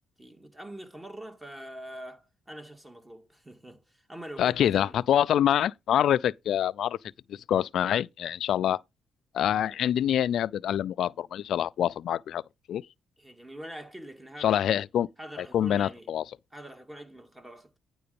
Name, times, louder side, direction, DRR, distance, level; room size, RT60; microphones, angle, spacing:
voice 1, 0.2-5.0 9.7-9.8 13.2-14.9 15.2-16.1 16.5-17.8, right 1 dB, 15° right, 1.9 m, -44 dB
voice 2, 4.4-7.0 7.3-8.8 9.3-12.4 12.7-12.8 14.4-15.1 15.4-16.2, left 10 dB, 70° left, 0.4 m, -26 dB
9.5 x 3.9 x 6.9 m
cardioid pair, 90°, 0 cm